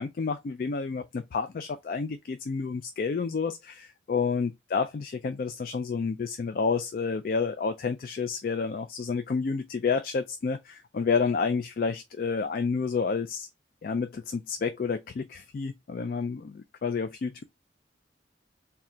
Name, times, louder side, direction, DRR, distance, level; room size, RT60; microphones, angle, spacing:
voice 1, 0.0-13.5 13.8-17.4, left 5 dB, 50° left, 0.3 m, -30 dB
3.7 x 2.3 x 4.2 m
head